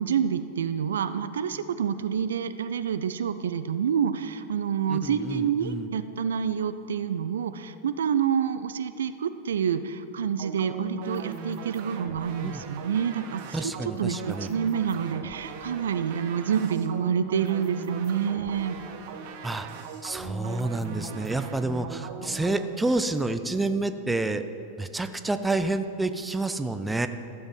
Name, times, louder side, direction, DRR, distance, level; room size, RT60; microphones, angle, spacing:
voice 1, 0.0-18.8, right 7 dB, 65° right, 12 dB, 0.4 m, -28 dB
voice 2, 4.9-5.9 12.4-12.6 13.5-14.5 19.4-19.7 20.0-24.4 24.8-27.1, right 2 dB, 10° right, 9 dB, 0.5 m, -29 dB
sound 1, 10.4-23.0, right 4 dB, 50° right, 0.9 m, -39 dB
13.5 x 7.1 x 5.5 m, 2.7 s
figure-of-eight pair, 90°, 0 cm